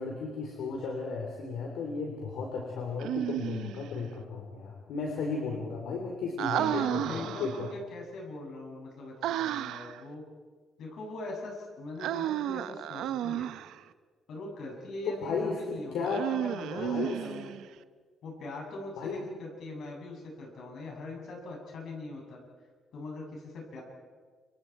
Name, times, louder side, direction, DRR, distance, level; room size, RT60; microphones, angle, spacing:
voice 1, 0.0-7.7 15.0-16.3 16.8-17.2 19.0-19.2, left 4 dB, 85° left, 0 dB, 3.5 m, -34 dB
Human voice, 3.0-3.9 6.4-7.7 9.2-10.0 12.0-13.8 16.0-17.7, right 12 dB, 85° right, 0.7 m, -32 dB
voice 2, 6.5-10.2 10.8-13.5 14.3-17.5 18.2-22.4 22.9-23.8, left 2 dB, 70° left, -1 dB, 7.6 m, -41 dB
29.0 x 25.5 x 4.7 m, 1.5 s
cardioid pair, 90°, 0 cm